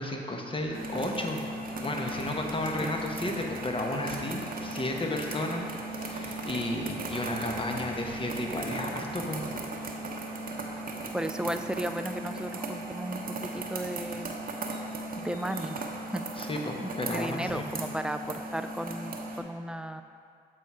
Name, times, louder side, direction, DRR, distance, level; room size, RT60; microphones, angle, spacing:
voice 1, 0.0-1.4 1.8-9.4 16.4-17.7, left 1 dB, 25° left, 2 dB, 1.1 m, -33 dB
sound 1, 0.6-19.4, left 1 dB, 70° left, 1.3 m, -51 dB
sound 2, 0.7-19.4, right 2 dB, 45° right, 0.9 m, -37 dB
voice 2, 11.1-13.2 13.5-14.3 15.2-15.8 16.1-16.5 16.8-20.0, right 1 dB, 5° right, 8 dB, 0.4 m, -35 dB
7.5 x 4.2 x 4.7 m, 2.3 s
hypercardioid pair, 50°, 20 cm